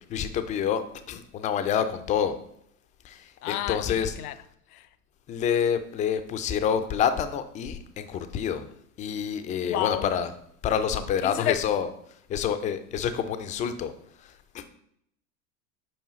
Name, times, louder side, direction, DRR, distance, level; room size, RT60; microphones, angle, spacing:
voice 1, 0.1-0.8 1.1-2.3 3.0-3.2 3.5-4.1 5.3-8.7 9.0-10.3 10.6-11.9 12.3-13.9 14.5-14.7, left 8 dB, 20° left, 0.3 m, -27 dB
voice 2, 3.4-4.3 4.7-4.8 9.6-10.1 11.2-11.6, left 13 dB, 70° left, 0.6 m, -30 dB
7.4 x 4.9 x 3.1 m
hypercardioid pair, 85°, 46 cm